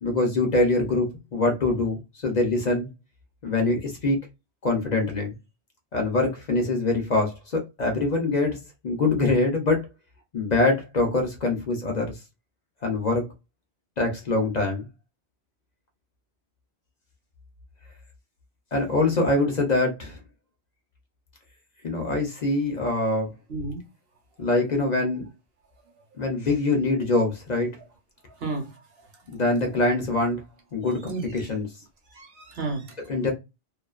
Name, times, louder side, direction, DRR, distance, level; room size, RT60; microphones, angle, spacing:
voice 1, 0.0-2.9 3.4-4.2 4.6-5.3 5.9-8.6 8.8-9.8 10.3-12.2 12.8-13.3 14.0-14.9 18.7-20.2 21.8-23.3 24.4-25.3 26.2-27.7 29.3-30.4 30.7-31.7 33.1-33.3, left 2 dB, 50° left, 0.6 m, -24 dB
voice 2, 23.5-23.9 28.4-28.8 29.3-29.4 31.3-31.5 32.1-33.1, right 2 dB, 60° right, 1.0 m, -33 dB
2.4 x 2.3 x 2.3 m
omnidirectional pair, 1.2 m